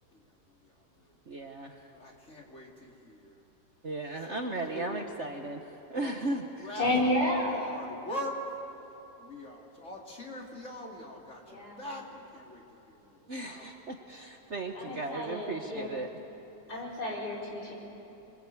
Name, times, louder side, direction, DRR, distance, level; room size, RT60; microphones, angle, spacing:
voice 1, 0.1-1.1 1.9-3.4 4.3-5.1 5.9-8.4 9.2-13.7 16.7-16.9, left 1 dB, 40° left, -1 dB, 3.3 m, -43 dB
voice 2, 1.3-1.8 3.8-6.4 13.3-16.1, right 2 dB, 45° right, 3 dB, 1.3 m, -36 dB
voice 3, 6.8-7.6 11.5-11.8 14.7-15.9 16.7-17.7, left 1 dB, 55° left, -3 dB, 5.2 m, -31 dB
26.5 x 22.5 x 8.4 m, 3.0 s
omnidirectional pair, 2.1 m